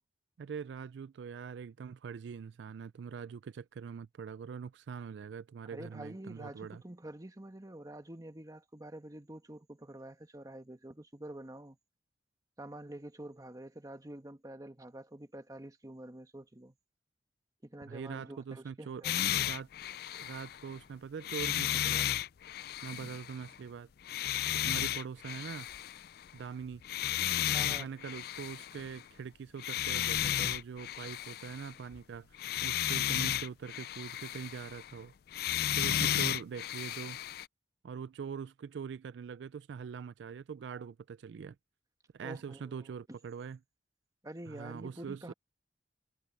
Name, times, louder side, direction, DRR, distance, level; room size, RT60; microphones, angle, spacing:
voice 1, 0.4-6.8 17.9-19.0 19.3-19.7 20.1-22.1 22.8-23.9 24.5-25.7 26.3-26.8 27.7-35.1 35.8-37.2 37.8-41.6 42.1-43.6 44.5-45.3, right 6 dB, 75° right, 0.3 m, -43 dB
voice 2, 5.6-11.8 12.6-16.8 17.6-19.2 27.5-27.9 42.2-42.9 44.2-45.3, right 1 dB, 20° right, 1.3 m, -47 dB
sound 1, 19.0-20.8 21.2-23.6 24.1-26.4 26.7-29.0 29.6-32.0 32.3-35.0 35.3-37.5, left 11 dB, 60° left, 0.4 m, -34 dB
head